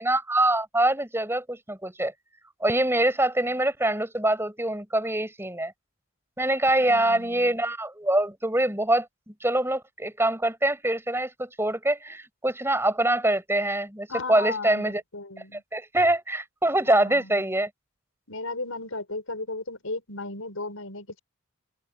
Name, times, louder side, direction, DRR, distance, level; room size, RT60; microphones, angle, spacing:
voice 1, 0.0-2.1 2.6-5.7 6.4-15.0 15.5-17.7, right 1 dB, 10° right, 7.9 m, -24 dB
voice 2, 6.9-7.6 14.1-15.6 16.8-17.5 18.3-21.2, left 3 dB, 80° left, 5.6 m, -35 dB
open air
head